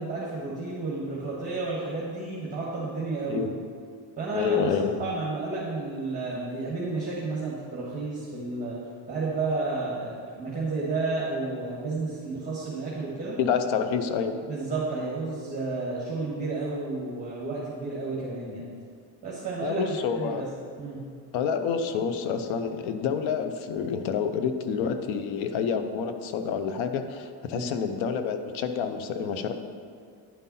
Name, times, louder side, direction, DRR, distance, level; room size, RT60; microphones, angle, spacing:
voice 1, 0.0-3.4 4.2-4.6 5.0-8.7 9.1-13.4 14.5-18.6 19.2-20.4 20.8-21.0 27.5-27.7, right 3 dB, 15° right, -6 dB, 1.8 m, -31 dB
voice 2, 4.3-5.1 13.4-14.4 19.6-20.5 21.3-29.5, left 6 dB, 75° left, 8 dB, 0.8 m, -28 dB
10.5 x 5.5 x 4.2 m, 2.3 s
cardioid pair, 115°, 47 cm